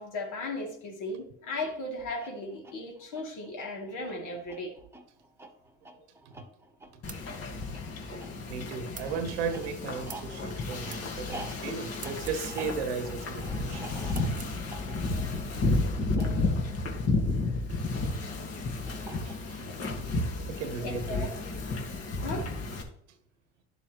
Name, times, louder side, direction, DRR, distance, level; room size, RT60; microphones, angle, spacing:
voice 1, 0.0-4.7 18.5-18.7 20.8-21.3 22.2-22.5, left 2 dB, 60° left, 0 dB, 2.9 m, -36 dB
sound 1, 2.1-17.8 18.9-19.7, right 1 dB, 5° right, 1.3 m, -48 dB
Wind / Ocean, 7.0-22.8, left 2 dB, 45° left, 1.8 m, -32 dB
sound 2, 7.1-7.3 8.9-9.1 10.1-10.3 10.9-11.0 11.9-12.4 14.1-14.5, right 7 dB, 25° right, 0.7 m, -45 dB
voice 2, 8.1-13.9 19.0-19.6 20.5-21.3, right 5 dB, 85° right, 9 dB, 1.2 m, -36 dB
11.0 x 6.9 x 3.1 m, 0.67 s
hypercardioid pair, 80°, 34 cm